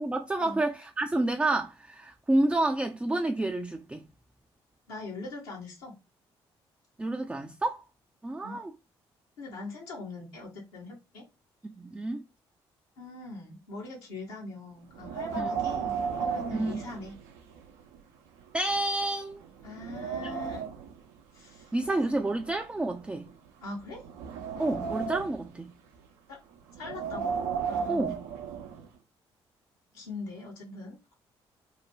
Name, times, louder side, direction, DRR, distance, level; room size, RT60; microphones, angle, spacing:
voice 1, 0.0-4.0 7.0-7.8 8.2-8.7 11.8-12.2 15.4-15.5 16.5-16.8 18.5-19.4 20.2-20.3 21.7-23.3 24.6-25.7 27.9-28.2, right 2 dB, 10° right, 0.3 m, -29 dB
voice 2, 4.9-6.0 8.4-8.6 9.4-11.3 13.0-17.1 19.6-20.6 21.3-21.7 23.6-24.0 26.3-26.4 26.8-27.4 27.7-28.1 29.9-31.2, left 2 dB, 75° left, 1.1 m, -41 dB
Wind, 15.0-17.6 17.9-18.0 18.7-18.8 19.3-20.9 21.8-23.3 23.9-25.5 26.7-28.9, right 6 dB, 70° right, 0.5 m, -34 dB
2.6 x 2.1 x 3.2 m
figure-of-eight pair, 45°, 13 cm